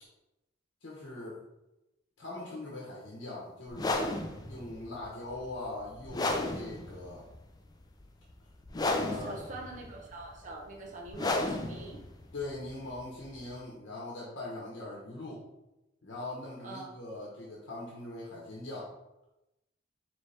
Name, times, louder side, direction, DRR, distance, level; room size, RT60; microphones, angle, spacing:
voice 1, 0.8-1.4 2.2-4.1 4.5-7.2 8.8-9.4 12.3-15.5 16.0-18.9, left 2 dB, 75° left, -4 dB, 0.9 m, -41 dB
sound 1, 3.7-13.6, left 2 dB, 20° left, 0.3 m, -34 dB
voice 2, 9.1-12.0 16.6-17.0, right 2 dB, 40° right, -1 dB, 0.7 m, -44 dB
4.1 x 3.1 x 3.3 m, 0.94 s
head